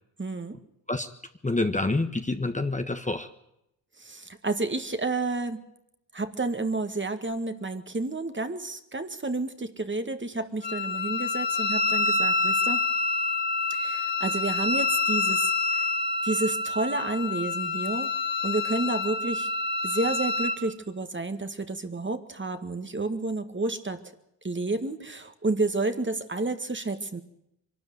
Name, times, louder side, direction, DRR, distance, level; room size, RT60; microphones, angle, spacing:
voice 1, 0.2-0.6 4.0-5.6 6.1-12.8 13.7-15.8 16.2-18.1 18.4-19.5 19.8-24.0 24.4-27.2, right 3 dB, 25° right, 8 dB, 2.0 m, -30 dB
voice 2, 1.4-3.3, left 2 dB, 15° left, 7 dB, 1.4 m, -27 dB
Wind instrument woodwind instrument, 10.6-20.6, left 3 dB, 65° left, 2.7 m, -27 dB
23.5 x 13.0 x 9.6 m, 0.81 s
cardioid pair, 60°, 44 cm